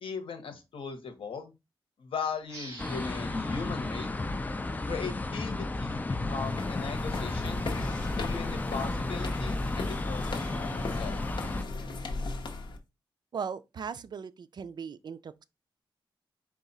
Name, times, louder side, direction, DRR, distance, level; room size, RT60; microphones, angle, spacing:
voice 1, 0.0-1.5 2.0-4.1 4.9-7.6 8.1-11.2, left 5 dB, 80° left, 1.0 m, -38 dB
sound 1, 2.4-5.7, right 2 dB, 35° right, 1.7 m, -50 dB
sound 2, 2.8-11.6, left 2 dB, 20° left, 0.4 m, -33 dB
sound 3, 6.2-12.8, left 2 dB, 60° left, 0.9 m, -36 dB
voice 2, 13.3-15.4, right 6 dB, 50° right, 0.4 m, -38 dB
4.8 x 2.4 x 4.0 m
wide cardioid pair, 105°, 9 cm